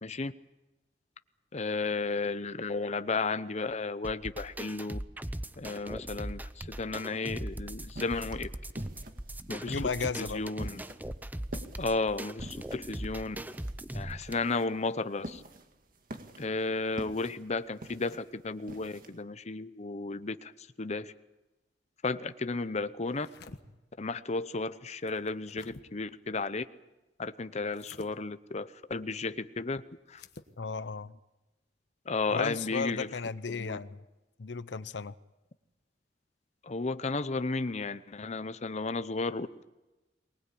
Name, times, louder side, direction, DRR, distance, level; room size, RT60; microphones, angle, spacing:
voice 1, 0.0-0.3 1.5-5.0 5.6-8.5 9.5-9.8 10.3-10.8 11.8-13.4 13.9-15.4 16.4-20.5 20.8-21.1 22.0-23.3 24.0-26.6 27.2-29.8 30.1-30.2 32.1-33.1 33.5-33.8 36.6-39.6, left 3 dB, 40° left, 11 dB, 0.8 m, -33 dB
sound 1, 4.0-14.3, right 1 dB, 10° right, 0.7 m, -40 dB
sound 2, 7.5-19.2, right 1 dB, 55° right, 1.9 m, -47 dB
voice 2, 9.7-10.4 30.6-31.1 32.3-34.0 34.4-35.1, left 4 dB, 85° left, 15 dB, 0.8 m, -34 dB
sound 3, 23.1-23.6 25.1-25.8 27.7-28.1 30.1-30.5, left 3 dB, 65° left, 1.4 m, -49 dB
23.5 x 20.0 x 8.5 m, 1.0 s
head